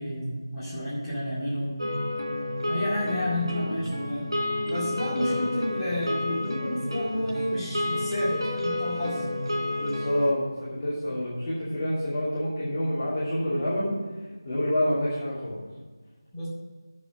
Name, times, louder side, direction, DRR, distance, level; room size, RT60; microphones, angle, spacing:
voice 1, 0.0-1.8 2.7-4.3 4.6-9.3 16.3-16.5, left 1 dB, ahead, -15 dB, 2.2 m, -31 dB
sound 1, 1.8-10.3, left 1 dB, 85° right, 3.0 m, -30 dB
voice 2, 5.1-5.4 9.8-13.9 14.4-15.6, left 1 dB, 25° left, -11 dB, 2.7 m, -28 dB
7.3 x 6.6 x 7.5 m, 1.4 s
figure-of-eight pair, 165°, 2 cm